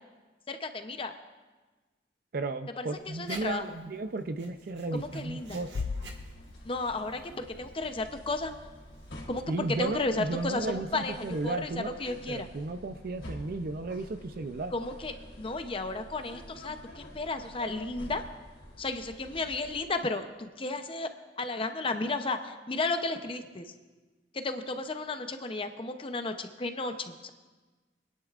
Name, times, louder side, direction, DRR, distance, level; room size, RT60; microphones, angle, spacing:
voice 1, 0.5-1.1 2.8-3.8 4.9-5.6 6.6-8.5 9.3-12.5 14.7-18.2 18.8-21.1 21.4-23.7 24.3-27.3, left 3 dB, 30° left, 8 dB, 0.6 m, -33 dB
voice 2, 2.3-5.9 9.5-11.9 12.3-14.7, right 3 dB, 55° right, 10 dB, 0.5 m, -34 dB
Writing, 2.9-9.3, right 3 dB, 70° right, 1.5 m, -53 dB
sound 1, 4.9-19.9, equal, 85° left, 3.0 m, -48 dB
Bass drum, 5.7-7.4, left 4 dB, 70° left, 0.4 m, -38 dB
25.0 x 10.5 x 2.4 m, 1.3 s
head